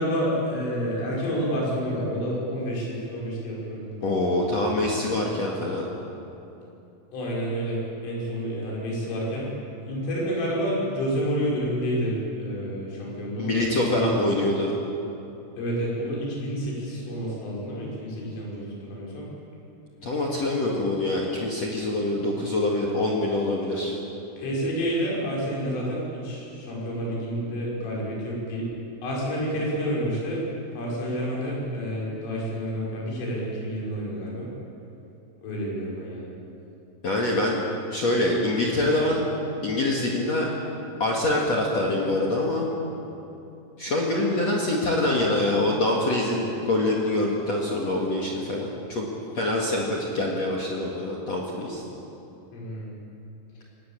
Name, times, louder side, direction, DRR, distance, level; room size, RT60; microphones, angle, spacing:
voice 1, 0.0-3.9 7.1-9.5 9.8-14.1 15.6-19.3 24.4-28.7 29.0-30.4 30.7-34.5 35.4-36.3 52.5-52.9, equal, 75° left, -4 dB, 8.0 m, -29 dB
voice 2, 4.0-5.9 13.4-14.8 20.0-24.0 37.0-37.6 37.9-39.2 39.6-40.5 41.0-42.7 43.8-49.1 49.3-51.8, left 1 dB, 50° left, -2 dB, 2.0 m, -25 dB
22.5 x 19.0 x 8.8 m, 2.9 s
omnidirectional pair, 5.9 m